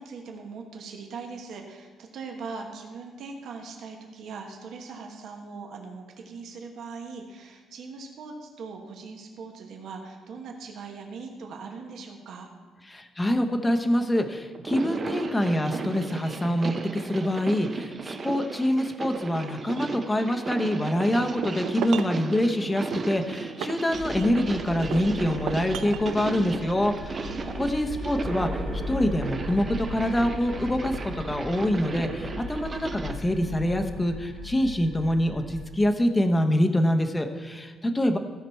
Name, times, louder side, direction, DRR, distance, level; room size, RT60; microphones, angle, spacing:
voice 1, 0.0-12.5 14.9-15.0 27.2-27.8, right 4 dB, 70° right, 2 dB, 1.2 m, -40 dB
voice 2, 12.9-27.2 27.6-38.2, left 1 dB, 15° left, 6 dB, 0.8 m, -25 dB
sound 1, 14.5-33.2, right 4 dB, 35° right, 0.6 m, -35 dB
sound 2, 21.2-22.2 22.9-24.5 24.9-26.3, right 9 dB, 90° right, 0.4 m, -35 dB
sound 3, 23.9-35.7, left 2 dB, 80° left, 1.8 m, -38 dB
15.0 x 5.8 x 4.5 m, 1.5 s
cardioid pair, 135°, 0 cm